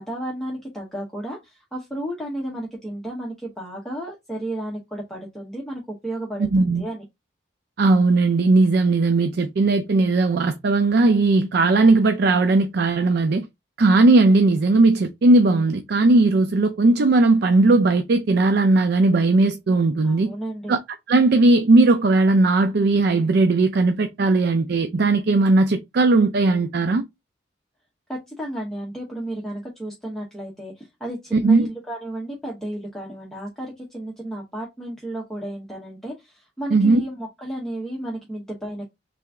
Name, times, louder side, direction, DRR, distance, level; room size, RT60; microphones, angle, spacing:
voice 1, 0.0-7.0 20.0-20.8 28.1-38.9, right 1 dB, ahead, 0.9 m, -33 dB
voice 2, 6.5-6.8 7.8-13.5 13.8-20.3 20.7-20.8 21.1-27.0 31.4-31.7 36.7-37.0, right 2 dB, 60° right, 0.4 m, -18 dB
3.4 x 2.9 x 3.6 m
head